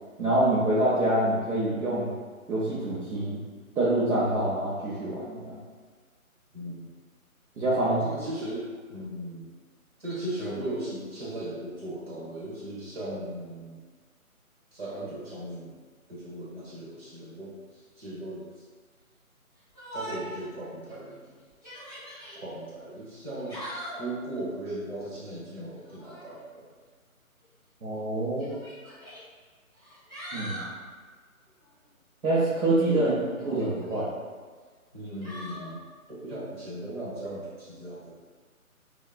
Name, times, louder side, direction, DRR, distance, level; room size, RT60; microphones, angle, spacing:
voice 1, 0.2-2.1 2.5-3.4 3.8-5.6 7.6-8.0 27.8-28.6 30.3-30.6 32.2-33.1 33.4-34.1, right 1 dB, 80° right, -9 dB, 0.8 m, -26 dB
voice 2, 6.5-6.9 7.8-9.5 10.0-13.8 14.7-15.8 16.1-18.6 19.9-21.3 22.3-26.7 32.9-33.1 34.9-38.1, right 1 dB, 45° right, -6 dB, 0.9 m, -37 dB
Yell, 19.7-20.4 20.9-21.0 21.5-22.4 23.2-24.1 25.8-26.3 27.4-27.5 28.4-29.2 29.8-30.7 33.4-34.0 35.2-35.7, equal, 15° right, 0.7 m, -41 dB
2.9 x 2.3 x 2.3 m, 1.5 s
figure-of-eight pair, 155°, 43 cm